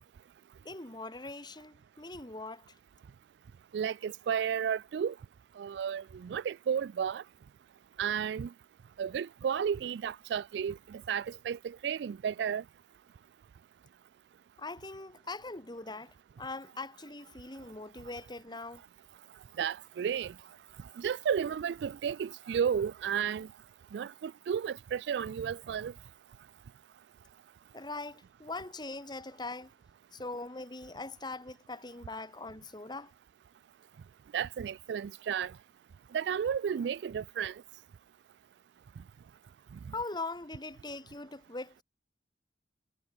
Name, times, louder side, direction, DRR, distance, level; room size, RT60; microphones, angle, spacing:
voice 1, 0.6-2.6 14.6-18.8 27.7-29.7 30.1-33.1 39.9-41.8, left 3 dB, 25° left, 2.5 m, -41 dB
voice 2, 3.7-5.1 5.6-7.2 8.0-8.5 9.0-12.6 19.6-20.3 21.0-23.5 23.9-25.9 34.3-35.5 36.1-37.5, right 8 dB, 70° right, 0.3 m, -33 dB
head